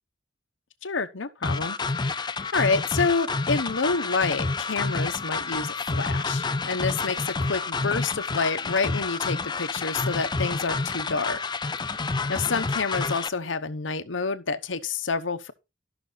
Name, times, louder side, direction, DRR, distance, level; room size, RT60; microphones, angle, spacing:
voice 1, 0.8-11.4 12.3-15.5, left 4 dB, 80° left, 1.0 m, -28 dB
sound 1, 1.4-13.3, left 3 dB, 25° left, 0.5 m, -29 dB
13.0 x 6.1 x 4.0 m
head